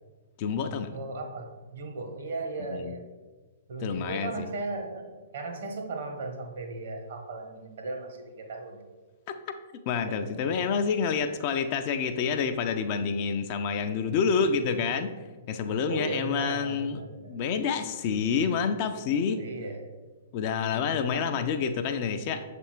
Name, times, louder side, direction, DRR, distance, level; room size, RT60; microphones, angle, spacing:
voice 1, 0.4-0.9 2.7-2.9 3.8-4.5 9.9-15.1 15.5-19.4 20.3-22.4, left 6 dB, 40° left, 7 dB, 0.4 m, -28 dB
voice 2, 0.9-3.0 3.7-5.1 5.3-8.8 10.1-10.2 14.8-15.0 15.9-17.4 19.4-19.9 21.1-21.2, right 3 dB, 55° right, 4 dB, 1.1 m, -36 dB
7.0 x 3.4 x 4.4 m, 1.3 s
figure-of-eight pair, 110°, 0 cm